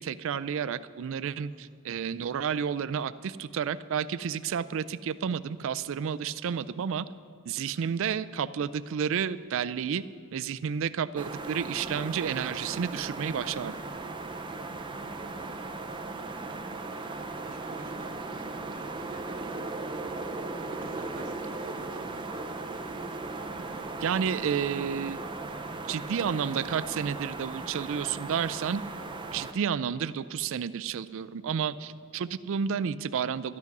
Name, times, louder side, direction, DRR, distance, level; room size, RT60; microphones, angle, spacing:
voice 1, 0.0-7.1 7.5-10.0 10.3-13.7 24.0-25.2 25.9-28.8 29.3-33.6, right 7 dB, 60° right, 14 dB, 0.4 m, -31 dB
voice 2, 1.5-1.8 15.2-16.0 17.4-19.3 20.8-22.4 31.4-31.5, right 2 dB, 40° right, 3 dB, 1.1 m, -50 dB
sound 1, 11.2-29.5, right 3 dB, 20° right, 0.7 m, -37 dB
13.0 x 11.0 x 6.0 m, 2.2 s
head